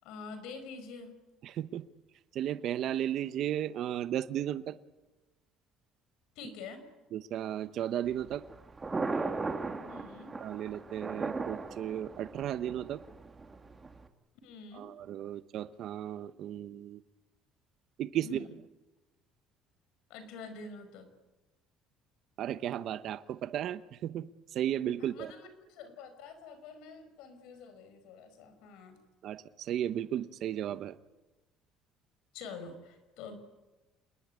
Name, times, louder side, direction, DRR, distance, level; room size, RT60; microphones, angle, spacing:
voice 1, 0.0-1.1 6.4-6.8 9.7-10.3 14.4-14.9 18.2-18.5 20.1-21.1 25.0-29.0 32.3-33.4, left 4 dB, 80° left, 10 dB, 5.5 m, -46 dB
voice 2, 1.4-1.8 2.3-4.7 7.1-8.4 10.4-13.0 14.7-17.0 18.0-18.4 22.4-25.3 29.2-30.9, right 11 dB, 50° right, 13 dB, 0.9 m, -34 dB
Thunder, 8.0-14.1, right 3 dB, 15° right, 1.9 m, -38 dB
28.0 x 20.5 x 9.6 m, 1.1 s
cardioid pair, 155°, 0 cm